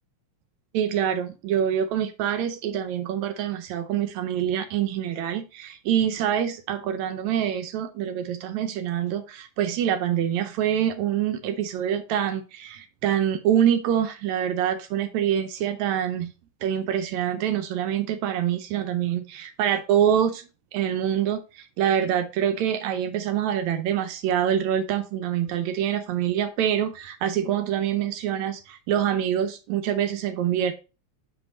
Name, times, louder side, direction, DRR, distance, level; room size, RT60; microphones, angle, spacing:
voice 1, 0.7-16.3 16.6-30.7, right 9 dB, 75° right, 9 dB, 1.9 m, -25 dB
5.7 x 5.2 x 4.1 m, 0.30 s
omnidirectional pair, 3.5 m